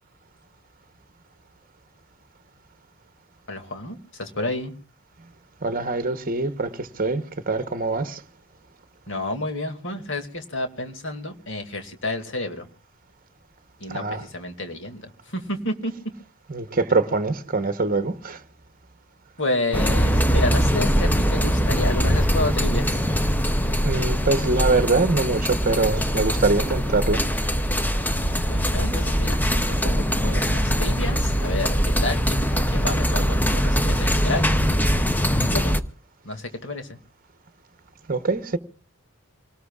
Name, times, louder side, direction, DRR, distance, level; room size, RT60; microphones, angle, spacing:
voice 1, 3.5-4.7 9.1-12.7 13.8-15.9 19.4-23.0 28.5-29.4 29.7-34.5 35.4-35.7 36.2-37.0, left 2 dB, 60° left, 2.4 m, -30 dB
voice 2, 5.6-8.2 13.9-14.2 16.5-18.4 23.8-27.2 38.1-38.6, right 3 dB, 40° right, 1.0 m, -23 dB
sound 1, 19.7-35.8, equal, 10° left, 0.7 m, -22 dB
26.5 x 19.0 x 2.4 m
head